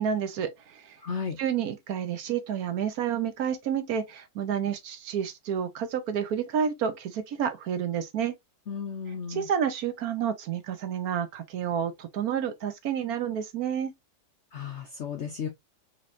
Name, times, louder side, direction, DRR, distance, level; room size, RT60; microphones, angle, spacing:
voice 1, 0.0-1.0 1.4-8.3 9.3-13.9, right 8 dB, 65° right, 1.1 m, -30 dB
voice 2, 1.0-1.4 8.7-9.5 14.5-15.5, left 6 dB, 65° left, 0.7 m, -34 dB
4.1 x 3.1 x 2.5 m
omnidirectional pair, 1.8 m